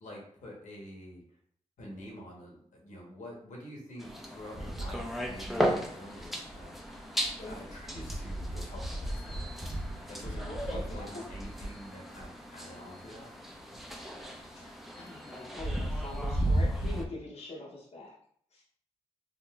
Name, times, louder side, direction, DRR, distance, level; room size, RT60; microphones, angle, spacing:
voice 1, 0.0-1.2 1.8-6.8 7.1-9.4 10.1-13.3, equal, 75° left, -2 dB, 1.0 m, -47 dB
sound 1, 4.0-17.1, equal, ahead, 0.5 m, -35 dB
voice 2, 10.2-11.2 14.2-18.1 18.5-18.6, left 1 dB, 55° left, -5 dB, 0.7 m, -43 dB
3.7 x 2.4 x 2.3 m, 0.62 s
cardioid pair, 60°, 13 cm